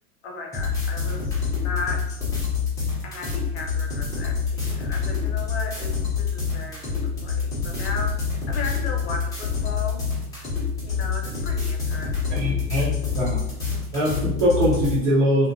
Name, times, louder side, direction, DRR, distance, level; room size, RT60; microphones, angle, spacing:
voice 1, 0.2-2.2 3.0-7.0 7.2-8.1 8.5-10.0 10.8-12.5, left 3 dB, 45° left, 2 dB, 0.7 m, -35 dB
sound 1, 0.5-14.9, left 5 dB, 10° left, 0.4 m, -27 dB
voice 2, 12.3-13.4 13.9-15.5, equal, 55° right, -6 dB, 0.8 m, -22 dB
2.7 x 2.1 x 2.5 m, 0.85 s
figure-of-eight pair, 100°, 45 cm